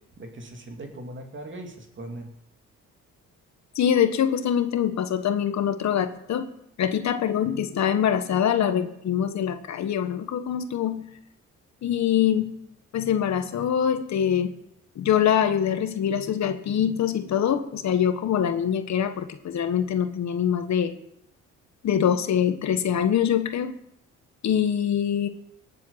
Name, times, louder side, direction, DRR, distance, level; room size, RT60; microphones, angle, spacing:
voice 1, 0.2-2.3, right 1 dB, 40° right, 3 dB, 2.7 m, -39 dB
voice 2, 3.7-6.5 6.8-11.1 11.8-12.5 12.9-14.5 15.0-20.9 21.8-23.7 24.4-25.3, left 9 dB, 65° left, 8 dB, 1.4 m, -24 dB
18.5 x 7.7 x 5.7 m, 0.76 s
cardioid pair, 90°, 30 cm